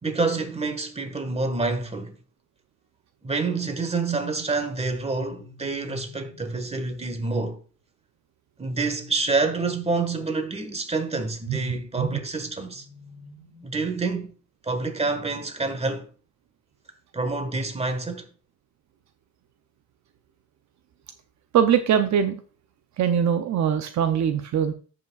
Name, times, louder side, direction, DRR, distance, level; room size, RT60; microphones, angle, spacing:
voice 1, 0.0-2.1 3.2-7.6 8.6-12.8 13.6-14.3 14.6-16.1 17.1-18.3, right 3 dB, 20° right, 1.5 m, -27 dB
sound 1, 5.0-6.8 8.6-10.5 12.4-14.3, left 2 dB, 70° left, 1.9 m, -50 dB
voice 2, 21.5-22.4 23.0-24.7, right 8 dB, 70° right, 0.7 m, -22 dB
14.0 x 5.8 x 2.4 m
cardioid pair, 90°, 30 cm